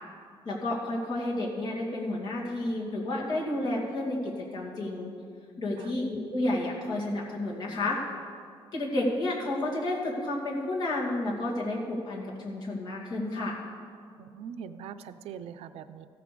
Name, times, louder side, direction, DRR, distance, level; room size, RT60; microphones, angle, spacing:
voice 1, 0.4-5.1 5.6-8.0 8.7-13.6, left 1 dB, 45° left, -4 dB, 2.3 m, -31 dB
voice 2, 14.2-16.1, right 7 dB, 80° right, 12 dB, 0.5 m, -42 dB
15.0 x 6.9 x 5.0 m, 2.2 s
cardioid pair, 150°, 10 cm